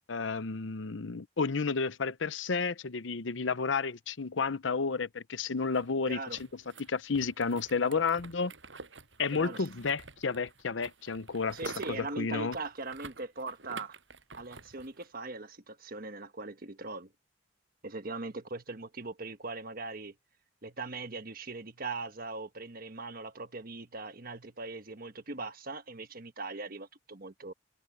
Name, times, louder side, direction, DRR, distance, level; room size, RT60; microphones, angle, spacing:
voice 1, 0.1-6.2 6.5-8.5 9.2-12.6, left 4 dB, 90° left, 0.8 m, -31 dB
sound 1, 5.7-15.1, right 3 dB, 75° right, 7.6 m, -49 dB
voice 2, 6.1-6.4 9.3-9.7 11.5-14.0 14.3-17.1 17.8-20.1 20.6-27.5, right 3 dB, 50° right, 1.4 m, -40 dB
head